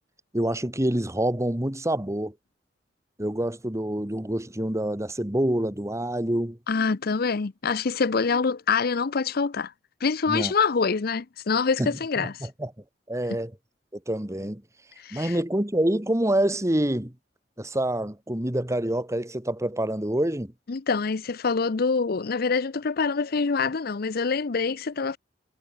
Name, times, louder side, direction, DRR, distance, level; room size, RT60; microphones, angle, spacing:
voice 1, 0.3-2.3 3.2-6.6 10.3-10.5 11.8-12.7 13.1-13.5 14.1-14.6 15.1-17.1 17.6-20.5, right 1 dB, 15° right, 1.8 m, -26 dB
voice 2, 6.7-9.7 10.0-12.5 15.0-15.4 20.7-25.2, left 5 dB, 55° left, 0.6 m, -25 dB
head